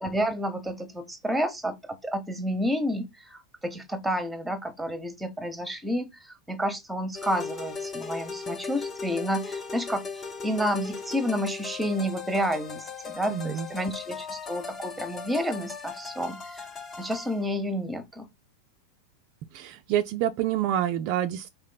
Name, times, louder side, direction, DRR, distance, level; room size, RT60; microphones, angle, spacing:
voice 1, 0.0-16.7 17.0-18.3, equal, 5° right, 0.9 m, -30 dB
sound 1, 7.1-17.4, left 5 dB, 25° left, 0.8 m, -38 dB
voice 2, 13.3-13.7 19.5-21.5, right 11 dB, 45° right, 0.4 m, -27 dB
4.2 x 3.2 x 3.8 m
figure-of-eight pair, 90°, 0 cm